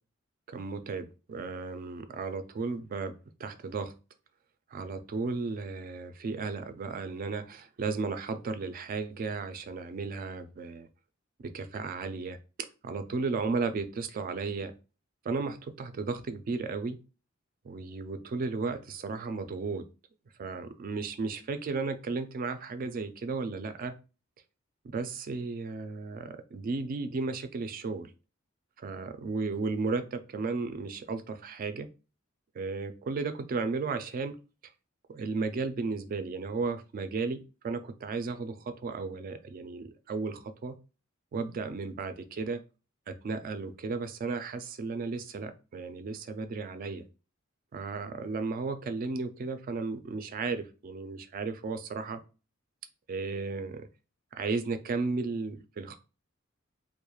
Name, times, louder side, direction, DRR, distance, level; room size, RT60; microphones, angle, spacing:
voice 1, 0.5-3.1 3.4-3.9 4.7-10.9 11.4-12.4 12.8-14.7 15.2-17.0 17.6-19.8 20.4-23.9 24.8-28.1 28.8-31.9 32.5-34.4 35.1-40.8 41.3-42.6 43.1-47.1 47.7-52.2 53.1-53.9 54.3-56.0, right 4 dB, 45° right, 0.3 m, -34 dB
2.3 x 2.1 x 3.0 m
head